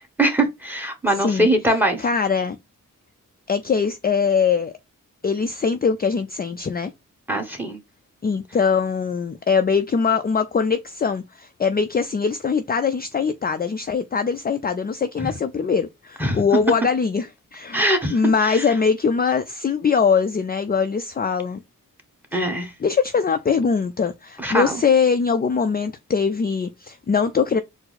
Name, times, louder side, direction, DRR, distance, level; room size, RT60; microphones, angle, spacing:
voice 1, 0.2-2.0 7.3-7.8 15.2-15.3 16.2-16.4 17.7-18.6 22.3-22.7 24.4-24.8, right 1 dB, 5° right, 1.3 m, -22 dB
voice 2, 1.2-1.5 2.0-2.6 3.5-4.7 5.2-6.9 8.2-21.6 22.8-27.6, left 5 dB, 30° left, 0.4 m, -22 dB
4.4 x 2.0 x 4.0 m
cardioid pair, 60°, 33 cm